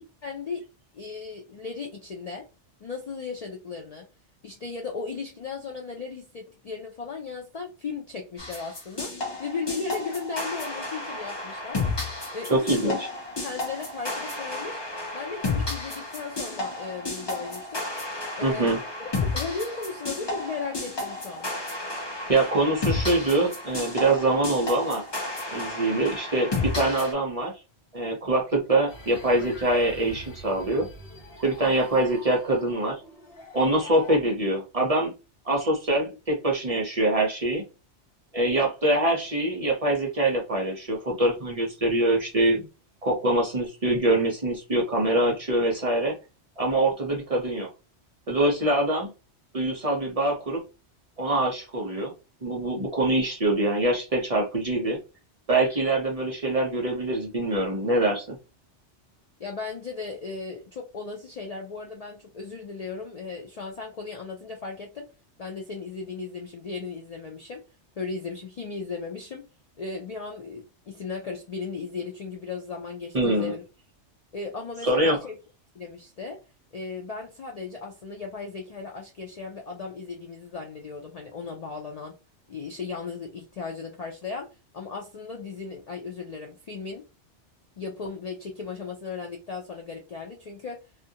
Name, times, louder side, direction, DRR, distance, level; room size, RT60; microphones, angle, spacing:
voice 1, 0.2-0.6 0.9-2.5 2.8-4.1 4.4-9.1 9.4-11.8 12.3-13.0 13.4-14.8 15.1-17.9 18.4-21.5 59.4-65.1 65.4-67.6 68.0-69.5 69.8-73.6 74.3-75.3 75.7-76.4 76.7-82.1 82.5-84.5 84.7-87.0 87.8-90.8, left 4 dB, 90° left, 0.3 m, -36 dB
sound 1, 8.4-27.1, left 3 dB, 25° left, 0.6 m, -32 dB
voice 2, 12.5-13.0 18.4-18.8 22.3-25.0 25.5-27.5 27.9-30.9 31.4-33.0 33.5-35.1 35.4-37.6 38.3-42.7 43.0-46.2 46.6-47.7 48.3-49.1 49.5-50.6 51.2-52.1 52.4-55.0 55.5-58.4 73.1-73.5 74.8-75.2, right 2 dB, 45° right, 0.5 m, -24 dB
sound 2, 28.9-34.2, left 1 dB, 55° left, 1.0 m, -44 dB
2.3 x 2.1 x 2.7 m
omnidirectional pair, 1.2 m